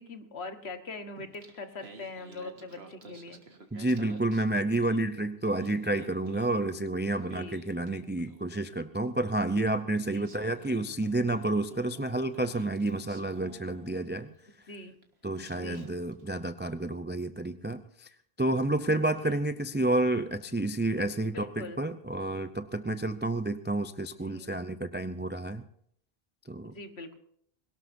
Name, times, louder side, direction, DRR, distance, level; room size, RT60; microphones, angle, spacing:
voice 1, 0.0-3.4 5.4-5.5 7.3-7.6 9.9-10.3 14.7-14.9 15.5-15.9 19.2-19.4 21.3-21.8 24.2-24.5 26.7-27.2, left 2 dB, 85° left, 8 dB, 1.7 m, -42 dB
Singing, 1.2-5.1 5.4-8.7 9.7-9.8 10.2-14.4 15.0-15.1 15.4-16.2, right 3 dB, 80° right, 1.9 m, -52 dB
voice 2, 3.7-14.3 15.2-18.1 18.4-25.6 26.5-26.7, right 2 dB, 15° right, 10 dB, 0.5 m, -30 dB
22.0 x 18.0 x 2.7 m, 0.66 s
omnidirectional pair, 1.1 m